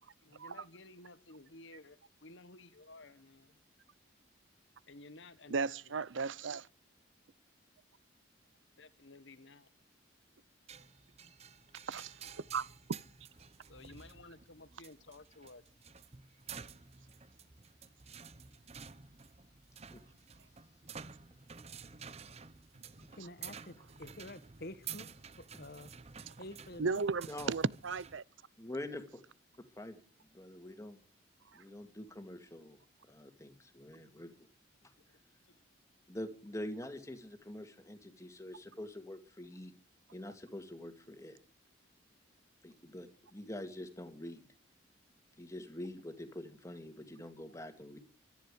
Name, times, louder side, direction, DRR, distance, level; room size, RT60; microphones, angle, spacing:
voice 1, 0.2-3.6 4.9-6.0 8.8-9.7 13.7-15.6 35.0-35.7, left 2 dB, 70° left, 1.5 m, -55 dB
voice 2, 5.5-6.7 11.9-12.1 12.5-12.7 26.8-28.2, right 4 dB, 75° right, 0.7 m, -34 dB
sound 1, 10.7-28.2, right 7 dB, 35° right, 0.8 m, -51 dB
voice 3, 23.1-25.1 25.4-25.9 26.4-27.0, left 1 dB, 50° left, 1.6 m, -48 dB
voice 4, 28.6-29.2 29.8-30.0 30.3-31.0 31.5-32.8 33.0-34.5 34.8-34.9 36.1-39.7 40.1-41.4 42.6-44.4 45.4-48.0, left 1 dB, 15° left, 2.2 m, -45 dB
24.5 x 10.5 x 5.0 m
head